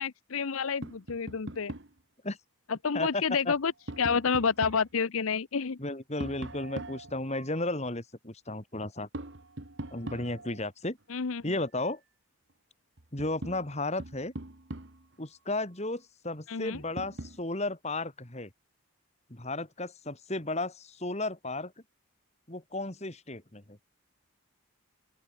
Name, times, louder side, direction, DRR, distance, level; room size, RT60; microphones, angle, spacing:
voice 1, 0.0-1.7 2.7-3.7 4.0-5.8 11.1-11.5 16.5-16.8, left 5 dB, 75° left, 0.7 m, -29 dB
Tap, 0.8-2.0 3.4-4.9 6.2-7.6 9.1-10.7 12.5-12.6 13.0-15.1 16.7-17.4, right 1 dB, 55° right, 1.7 m, -42 dB
voice 2, 2.9-3.5 5.8-9.1 9.9-11.0 11.4-12.0 13.1-14.3 15.2-18.5 19.3-21.7 22.5-23.8, left 2 dB, 30° left, 2.4 m, -34 dB
open air
head